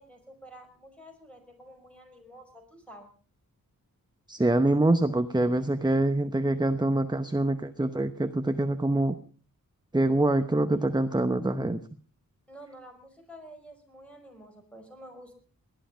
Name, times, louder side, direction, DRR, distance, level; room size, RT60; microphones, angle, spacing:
voice 1, 0.0-3.1 12.5-15.4, equal, 5° left, 3 dB, 5.3 m, -49 dB
voice 2, 4.3-9.1 9.9-11.8, right 1 dB, 10° right, 9 dB, 0.8 m, -25 dB
19.0 x 12.0 x 5.7 m, 0.42 s
wide cardioid pair, 110°, 34 cm